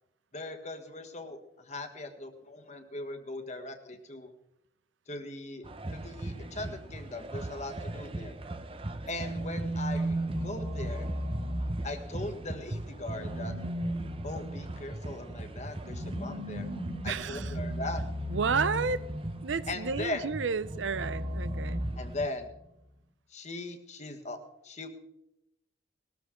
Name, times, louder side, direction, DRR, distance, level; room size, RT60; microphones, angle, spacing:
voice 1, 0.3-4.3 5.1-5.6 5.9-8.3 9.1-11.1 11.8-13.5 14.2-16.7 17.0-18.0 19.7-20.3 21.9-22.5 23.3-24.4 24.6-24.9, left 2 dB, 35° left, 6 dB, 1.5 m, -39 dB
sound 1, 5.6-22.3, right 1 dB, 30° right, 0.8 m, -40 dB
sound 2, 9.0-12.4 13.0-19.6 20.6-22.6, equal, 50° right, 3.1 m, -36 dB
voice 2, 17.1-17.5 18.3-19.0 19.4-21.9, right 5 dB, 75° right, 16 dB, 0.6 m, -31 dB
20.0 x 13.5 x 3.7 m, 0.85 s
head